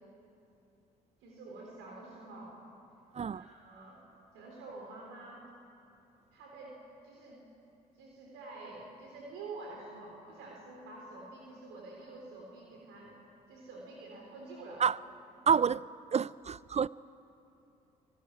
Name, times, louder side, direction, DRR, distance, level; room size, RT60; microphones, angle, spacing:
voice 1, 1.2-2.6 3.3-4.0 4.3-5.5 6.3-6.8 7.0-7.4 7.9-13.2 13.5-14.8, right 2 dB, 70° right, -1 dB, 3.7 m, -48 dB
voice 2, 15.5-15.8 16.1-16.9, right 7 dB, 30° right, 21 dB, 0.5 m, -28 dB
24.5 x 17.5 x 9.6 m, 2.8 s
hypercardioid pair, 45°, 21 cm